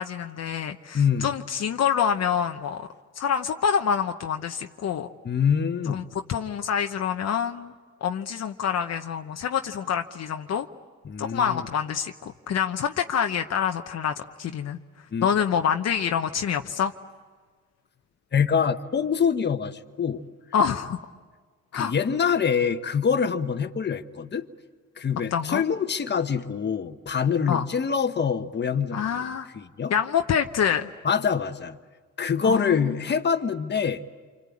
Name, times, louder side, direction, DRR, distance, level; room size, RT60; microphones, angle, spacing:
voice 1, 0.0-2.9 3.2-5.1 5.9-7.7 8.0-10.7 11.2-14.8 15.2-16.9 20.5-21.0 21.7-21.9 25.3-25.6 27.5-27.6 28.9-29.5 29.9-30.9 32.4-33.0, left 7 dB, 60° left, 5 dB, 0.9 m, -26 dB
voice 2, 0.9-1.3 5.2-6.0 11.0-11.7 15.1-15.3 18.3-20.2 21.7-24.5 25.0-29.2 29.5-29.9 31.0-31.8 32.2-34.0, left 6 dB, 35° left, 8 dB, 1.2 m, -25 dB
27.5 x 25.5 x 8.6 m, 1.5 s
cardioid pair, 90°, 30 cm